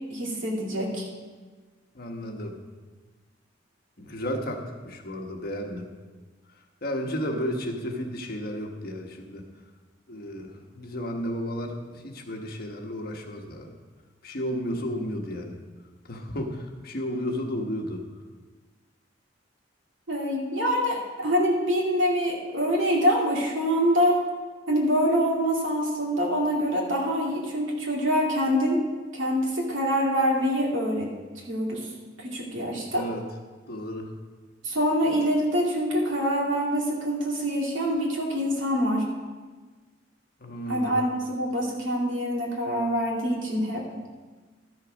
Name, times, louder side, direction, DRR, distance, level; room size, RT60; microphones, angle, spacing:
voice 1, 0.1-1.1 20.1-24.2 24.7-28.8 29.1-31.1 31.4-31.9 32.2-33.1 34.6-39.0 40.7-43.8, equal, 85° right, -2 dB, 2.4 m, -25 dB
voice 2, 1.9-2.6 4.0-5.9 6.8-9.5 10.1-13.7 14.2-15.6 16.0-18.0 32.9-33.2 33.7-34.1 40.4-40.9, equal, 55° left, 2 dB, 1.2 m, -33 dB
12.5 x 6.5 x 5.1 m, 1.3 s
head